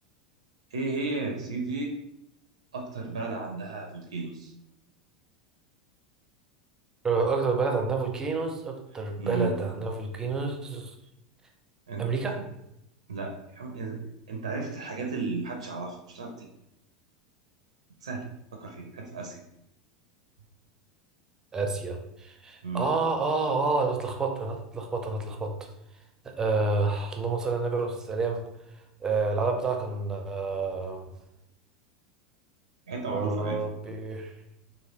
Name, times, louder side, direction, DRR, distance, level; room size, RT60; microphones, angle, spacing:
voice 1, 0.7-1.9 2.7-4.5 9.2-9.6 11.9-12.0 12.3-12.4 13.1-16.5 18.0-18.3 18.5-19.4 22.6-22.9 32.9-33.6, right 3 dB, 70° right, 2 dB, 0.4 m, -34 dB
voice 2, 7.0-10.9 12.0-12.4 21.5-25.5 26.4-28.4 29.0-31.0 33.1-34.3, right 4 dB, 20° right, 3 dB, 0.5 m, -29 dB
3.2 x 2.2 x 2.9 m, 0.83 s
figure-of-eight pair, 80°, 3 cm